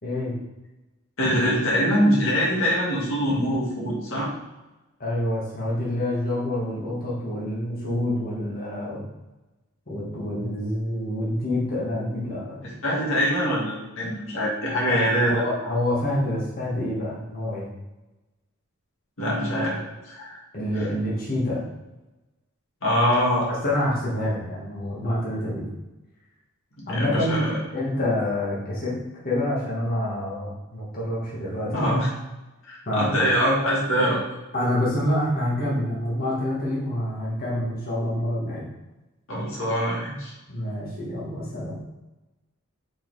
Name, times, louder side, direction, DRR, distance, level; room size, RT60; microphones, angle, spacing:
voice 1, 0.0-0.3 5.0-9.0 9.9-12.6 14.8-15.0 15.3-17.7 20.5-21.6 23.6-25.7 26.9-28.9 29.2-31.8 32.8-33.4 34.5-38.7 40.5-41.8, left 1 dB, 45° left, -6 dB, 1.7 m, -27 dB
voice 2, 1.2-4.3 12.8-15.4 19.2-19.8 20.0-20.4 20.7-20.9 22.8-23.5 26.9-27.6 31.7-32.1 32.7-34.2 39.3-40.3, equal, 60° left, -5 dB, 1.8 m, -23 dB
4.8 x 4.2 x 4.7 m, 1.1 s
head